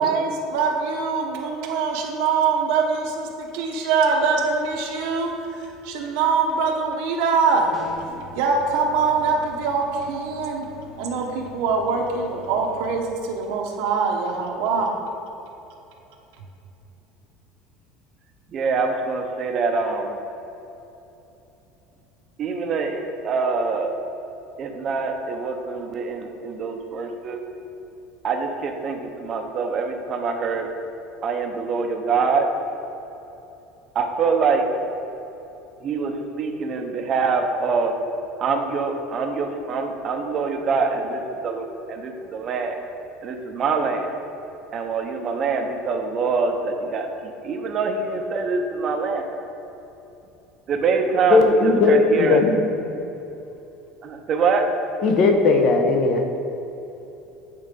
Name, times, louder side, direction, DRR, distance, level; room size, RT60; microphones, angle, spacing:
voice 1, 0.0-7.7 8.3-10.7 11.0-14.9, right 5 dB, 70° right, 0.9 m, -23 dB
sound 1, 7.7-8.3, left 2 dB, 10° left, 1.4 m, -40 dB
sound 2, 7.8-13.0, left 1 dB, 70° left, 1.3 m, -44 dB
voice 2, 18.5-20.2 22.4-23.9 24.6-27.4 28.2-30.7 31.2-32.5 33.9-34.6 35.8-37.9 38.4-42.8 43.2-44.1 44.7-49.2 50.7-52.5 54.0-54.6, right 4 dB, 30° right, 0.7 m, -24 dB
voice 3, 51.3-52.6 55.0-56.2, left 3 dB, 40° left, 0.7 m, -17 dB
8.4 x 3.9 x 5.2 m
cardioid pair, 165°, 0 cm